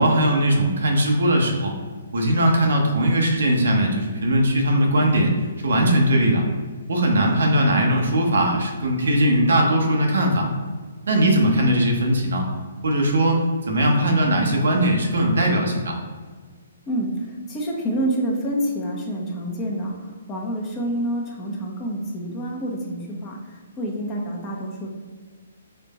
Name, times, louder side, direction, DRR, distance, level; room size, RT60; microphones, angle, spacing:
voice 1, 0.0-1.7 2.1-5.3 5.6-6.4 6.9-10.5 11.1-12.4 12.8-13.4 13.7-15.9, right 1 dB, 70° right, 1 dB, 0.9 m, -19 dB
voice 2, 16.9-24.9, right 1 dB, 25° left, -2 dB, 1.0 m, -28 dB
4.3 x 2.6 x 4.1 m, 1.5 s
figure-of-eight pair, 130°, 0 cm